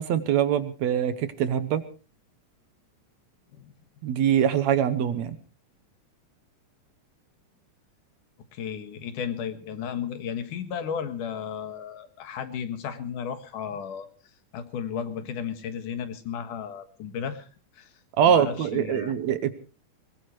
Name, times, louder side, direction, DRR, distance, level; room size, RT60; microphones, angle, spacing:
voice 1, 0.0-1.8 4.0-5.4 18.2-19.5, right 9 dB, 70° right, 13 dB, 2.1 m, -23 dB
voice 2, 8.5-14.1 14.5-17.5 17.7-17.9 18.3-19.1, left 7 dB, 85° left, 9 dB, 3.2 m, -34 dB
21.5 x 20.5 x 3.1 m, 0.36 s
omnidirectional pair, 3.6 m